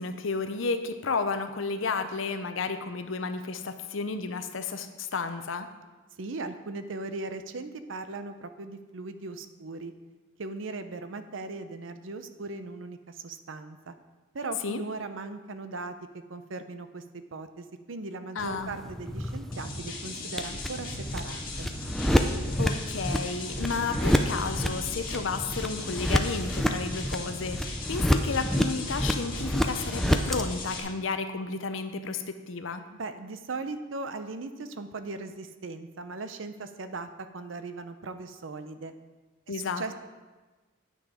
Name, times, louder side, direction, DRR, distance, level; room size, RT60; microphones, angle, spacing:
voice 1, 0.0-5.7 14.6-14.8 18.4-18.7 22.6-32.8 39.5-39.9, left 4 dB, 80° left, 9 dB, 0.7 m, -32 dB
voice 2, 6.2-9.9 10.4-13.9 14.3-16.0 16.3-21.7 32.9-38.9 39.5-39.9, right 3 dB, 75° right, 10 dB, 0.6 m, -38 dB
sound 1, 18.4-30.4, equal, ahead, 0.4 m, -29 dB
sound 2, 19.5-30.8, left 2 dB, 45° left, 1.7 m, -38 dB
9.2 x 6.2 x 4.8 m, 1.2 s
head